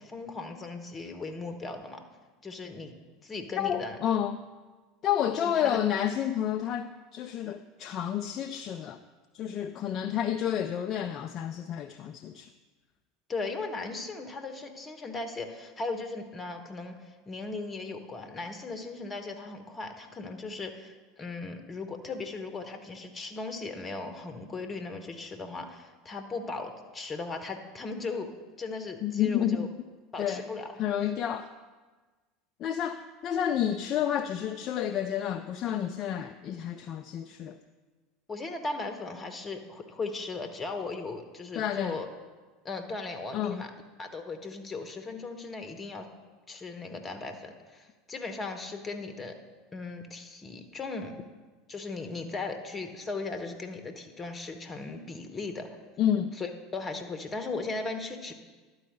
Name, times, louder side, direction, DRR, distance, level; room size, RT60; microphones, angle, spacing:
voice 1, 0.0-2.0 2.4-2.9 3.2-4.0 5.4-5.8 13.3-29.7 30.1-30.8 38.3-42.1 42.6-43.7 44.0-46.1 46.5-49.4 49.7-51.1 51.7-55.7 56.4-58.3, left 3 dB, 25° left, 7 dB, 1.0 m, -37 dB
voice 2, 3.6-4.4 5.0-9.0 9.3-12.5 29.0-29.7 30.2-30.5 30.8-31.5 32.6-37.6 41.5-42.0 43.3-43.6 56.0-56.4, left 9 dB, 40° left, 8 dB, 0.3 m, -30 dB
11.5 x 4.8 x 6.5 m, 1.3 s
figure-of-eight pair, 75°, 0 cm